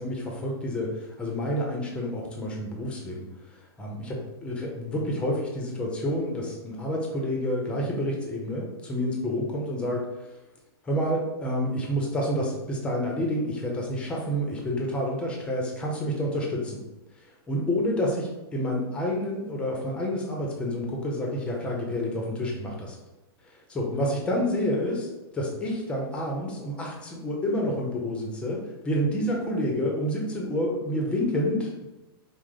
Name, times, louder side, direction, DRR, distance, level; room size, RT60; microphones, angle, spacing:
voice 1, 0.0-10.3 10.8-16.8 17.2-23.0 23.4-31.9, equal, 10° left, -1 dB, 0.6 m, -29 dB
4.8 x 2.0 x 3.6 m, 1.0 s
supercardioid pair, 165°, 13 cm